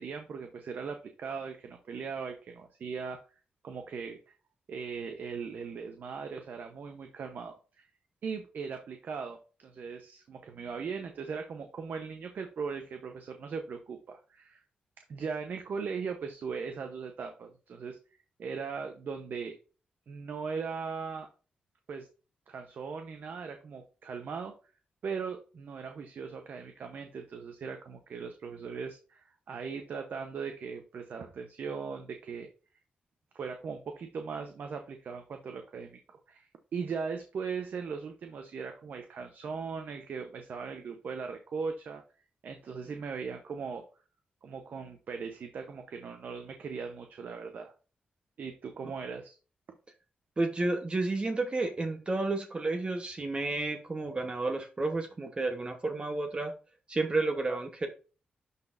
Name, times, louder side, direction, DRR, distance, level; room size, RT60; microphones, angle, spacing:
voice 1, 0.0-3.2 3.6-4.2 4.7-7.9 8.2-14.6 15.1-18.0 18.4-19.6 20.1-21.3 21.9-22.1 22.5-24.5 25.0-32.5 33.3-36.0 36.3-42.0 42.4-43.8 44.4-47.7 48.4-49.4, right 5 dB, 65° right, 5 dB, 0.8 m, -39 dB
voice 2, 50.4-56.5 56.9-57.9, right 2 dB, 30° right, 5 dB, 1.0 m, -31 dB
10.5 x 4.2 x 2.6 m, 0.35 s
cardioid pair, 65°, 3 cm